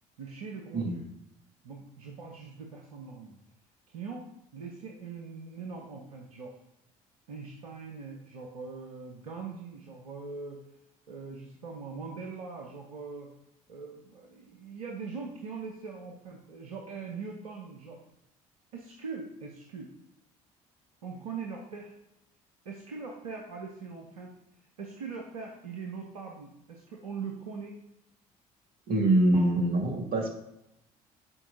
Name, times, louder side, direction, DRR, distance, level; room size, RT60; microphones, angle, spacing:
voice 1, 0.2-1.1 1.6-3.4 3.9-6.6 7.3-10.6 11.1-13.3 13.7-18.0 18.7-19.9 21.0-21.9 22.6-24.3 24.8-27.8 29.3-29.5, right 5 dB, 85° right, 0 dB, 0.8 m, -41 dB
voice 2, 28.9-30.3, right 1 dB, 55° right, 2 dB, 1.6 m, -24 dB
9.9 x 4.6 x 2.6 m, 0.84 s
figure-of-eight pair, 55°, 18 cm